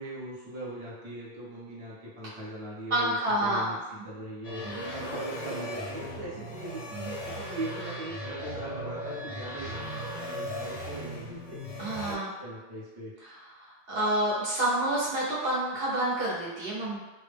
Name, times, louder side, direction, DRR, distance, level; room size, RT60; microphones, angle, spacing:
voice 1, 0.0-4.6 4.9-11.6 12.0-13.1, right 1 dB, 30° right, -8 dB, 0.7 m, -40 dB
voice 2, 2.9-3.7 4.6-5.2 11.8-12.3 13.2-17.0, right 1 dB, 65° right, -7 dB, 0.9 m, -29 dB
sound 1, 4.4-12.1, equal, 50° left, 0.4 m, -37 dB
2.3 x 2.0 x 3.3 m, 1.1 s
omnidirectional pair, 1.1 m